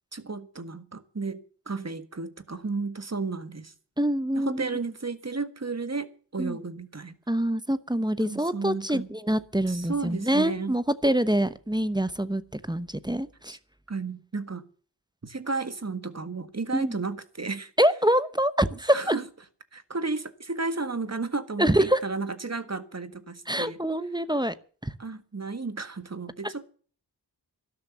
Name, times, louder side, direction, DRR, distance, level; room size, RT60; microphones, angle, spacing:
voice 1, 0.1-3.7 4.3-7.1 8.2-9.1 9.7-10.7 13.5-13.6 13.9-14.6 15.2-17.7 18.9-19.2 19.7-23.8 25.0-26.7, right 3 dB, 40° right, 1.6 m, -33 dB
voice 2, 4.0-4.6 6.4-6.6 7.3-13.6 16.7-17.0 17.8-19.1 21.6-22.0 23.5-24.5 24.8-24.9, right 1 dB, 10° right, 0.9 m, -25 dB
12.5 x 11.5 x 6.9 m
wide cardioid pair, 50°, 42 cm